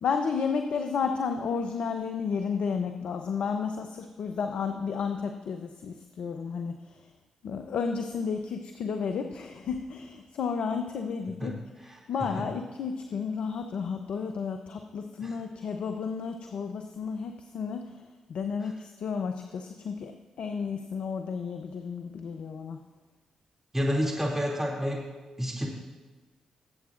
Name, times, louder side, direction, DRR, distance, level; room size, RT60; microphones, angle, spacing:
voice 1, 0.0-7.0 7.4-11.5 11.8-18.0 18.3-20.1 20.4-22.8, left 5 dB, 65° left, 6 dB, 0.7 m, -32 dB
voice 2, 23.7-25.0 25.4-25.7, equal, 15° right, -2 dB, 2.6 m, -28 dB
19.5 x 8.2 x 2.5 m, 1.3 s
hypercardioid pair, 40°, 2 cm